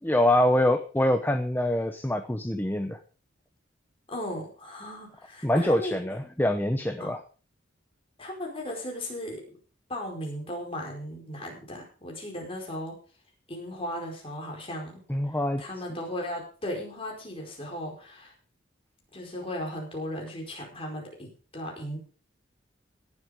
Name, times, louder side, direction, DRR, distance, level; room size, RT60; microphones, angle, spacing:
voice 1, 0.0-3.0 5.4-7.2 15.1-15.6, left 1 dB, 10° left, 7 dB, 0.9 m, -25 dB
voice 2, 4.1-6.1 7.0-7.1 8.2-9.4 9.9-12.9 13.5-15.0 15.3-18.3 19.1-22.0, left 1 dB, 30° left, 0 dB, 4.8 m, -36 dB
17.0 x 8.0 x 5.2 m, 0.38 s
head